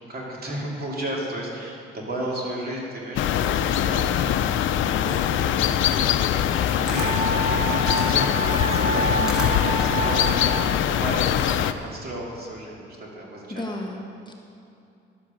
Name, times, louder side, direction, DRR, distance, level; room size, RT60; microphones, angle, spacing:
voice 1, 0.1-4.1 4.4-6.1 6.3-13.6 13.9-14.0, right 1 dB, 50° right, -3 dB, 2.7 m, -34 dB
sound 1, 3.2-11.7, left 10 dB, 70° left, 0.5 m, -22 dB
Camera, 6.9-11.9, equal, 5° right, 1.5 m, -38 dB
Wind instrument woodwind instrument, 7.0-10.8, right 4 dB, 25° right, 1.0 m, -28 dB
voice 2, 13.5-14.3, left 1 dB, 20° left, 1 dB, 1.1 m, -33 dB
11.5 x 7.5 x 5.1 m, 2.7 s
cardioid pair, 80°, 21 cm